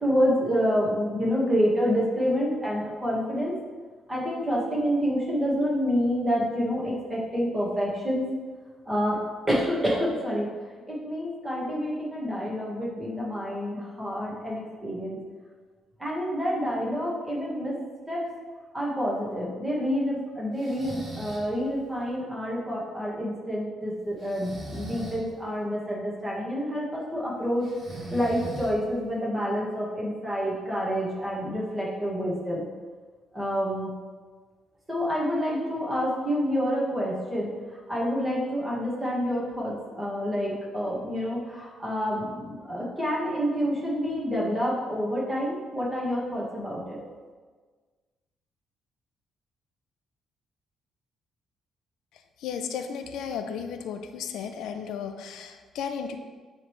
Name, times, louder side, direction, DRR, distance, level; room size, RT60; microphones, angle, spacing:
voice 1, 0.0-3.6 4.1-8.3 8.9-9.2 9.5-10.5 10.9-15.2 16.0-17.8 18.1-18.3 18.7-27.6 28.1-32.7 33.3-34.0 34.9-37.5 37.9-47.0, equal, 15° right, -5 dB, 1.5 m, -28 dB
Breathing, 20.6-21.5 24.2-25.2 27.6-29.0, right 1 dB, 35° right, 1.3 m, -39 dB
voice 2, 52.1-56.2, left 7 dB, 90° left, 6 dB, 0.4 m, -34 dB
9.7 x 3.3 x 3.1 m, 1.5 s
cardioid pair, 135°, 0 cm